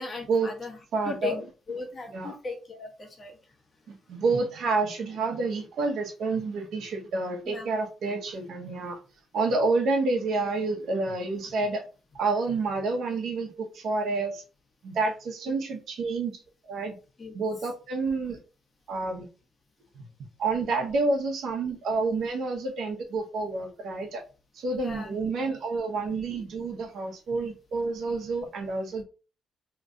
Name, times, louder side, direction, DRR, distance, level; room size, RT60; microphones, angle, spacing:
voice 1, 0.0-0.8 1.0-1.4 1.7-3.4 7.4-7.7 17.2-17.3 24.8-25.1, left 3 dB, 40° left, 1.1 m, -37 dB
voice 2, 0.9-1.3 2.1-2.3 3.9-9.0 9.3-11.8 12.1-14.4 14.8-17.0 17.3-18.4 18.9-19.3 20.4-24.2 24.5-29.0, right 3 dB, 70° right, 0.9 m, -29 dB
3.0 x 2.4 x 3.7 m
cardioid pair, 90°, 0 cm